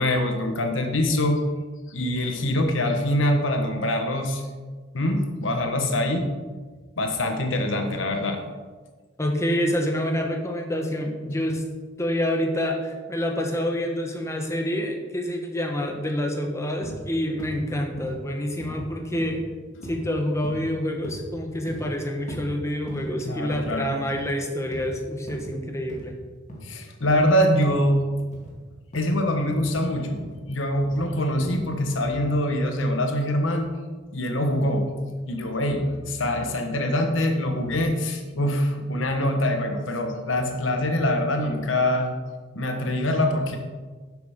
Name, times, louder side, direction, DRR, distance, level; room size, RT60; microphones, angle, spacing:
voice 1, 0.0-1.4 1.9-4.5 4.9-6.2 7.0-8.4 18.7-18.8 23.2-23.9 26.6-28.0 28.9-30.2 30.5-33.7 34.1-34.9 35.3-42.1 42.5-43.6, left 1 dB, 80° left, 4 dB, 1.2 m, -24 dB
voice 2, 9.2-11.6 12.0-19.4 19.8-26.2, equal, 15° left, 2 dB, 1.1 m, -27 dB
sound 1, 16.8-17.0 17.4-17.6 18.0-18.2 18.6-18.8 19.2-19.4 19.8-20.0 20.4-20.7 21.0-21.3 21.7-21.9 22.3-22.4 22.9-23.1 23.5-23.7 24.0-24.3 24.7-24.9 25.3-25.5 25.9-26.1 26.5-26.7 27.1-27.3 27.7-27.9 28.3-28.6 28.9-29.2 29.5-29.8 30.2-30.4 30.8-31.0 31.4-31.6 32.0-32.2, equal, 40° left, 2.2 m, -39 dB
11.0 x 7.8 x 3.6 m, 1.4 s
head